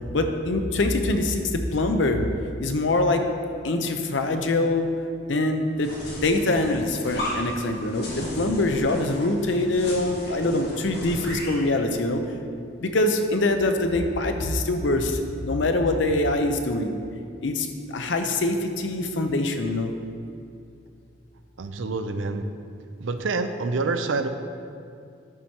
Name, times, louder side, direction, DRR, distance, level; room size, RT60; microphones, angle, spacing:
voice 1, 0.1-2.2 2.6-3.2 3.6-4.9 5.3-12.2 12.8-16.9 17.4-19.9, left 2 dB, 75° left, 6 dB, 0.7 m, -24 dB
sound 1, 5.8-11.6, equal, 55° left, 2.0 m, -35 dB
voice 2, 21.6-22.5 23.0-24.3, right 3 dB, 85° right, 9 dB, 0.5 m, -27 dB
11.0 x 4.4 x 4.6 m, 2.4 s
head